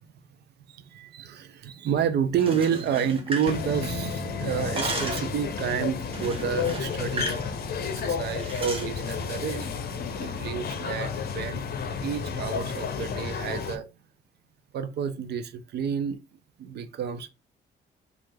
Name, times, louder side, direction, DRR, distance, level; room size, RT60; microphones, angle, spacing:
voice 1, 0.7-9.7 10.2-11.6 12.0-13.9 14.7-16.2 16.6-17.3, right 7 dB, 55° right, 0.5 m, -30 dB
sound 1, 2.3-4.2 4.5-5.4 6.1-7.5 7.7-7.9 8.4-8.9, right 2 dB, 30° right, 1.1 m, -35 dB
sound 2, 3.4-13.8, left 6 dB, 50° left, 0.6 m, -32 dB
3.2 x 2.4 x 3.1 m
cardioid pair, 90°, 20 cm